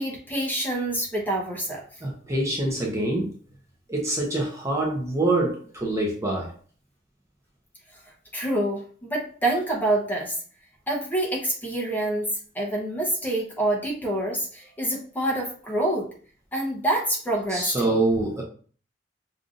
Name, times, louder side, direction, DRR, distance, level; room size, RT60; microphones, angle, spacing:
voice 1, 0.0-1.8 8.3-10.4 10.9-16.1 16.5-18.0, right 1 dB, 10° left, -2 dB, 0.9 m, -27 dB
voice 2, 2.0-3.3 3.9-6.5 17.5-18.4, right 2 dB, 15° right, -2 dB, 0.7 m, -25 dB
5.3 x 2.6 x 2.5 m, 0.43 s
head